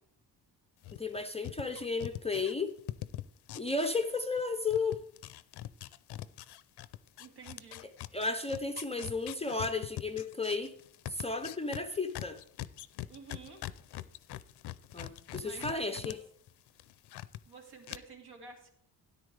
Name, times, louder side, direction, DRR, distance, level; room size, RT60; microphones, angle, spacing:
sound 1, 0.8-4.4 4.7-16.2 16.5-17.4 17.8-18.0, left 14 dB, 70° left, 0.5 m, -43 dB
voice 1, 0.9-2.7 3.6-5.0 8.1-10.7 11.1-12.4 14.9-16.2, left 3 dB, 15° left, 5 dB, 0.4 m, -33 dB
voice 2, 7.2-7.8 13.1-13.6 15.4-16.2 17.5-18.7, right 4 dB, 70° right, 3 dB, 2.2 m, -50 dB
12.5 x 10.0 x 3.3 m, 0.67 s
wide cardioid pair, 160°, 42 cm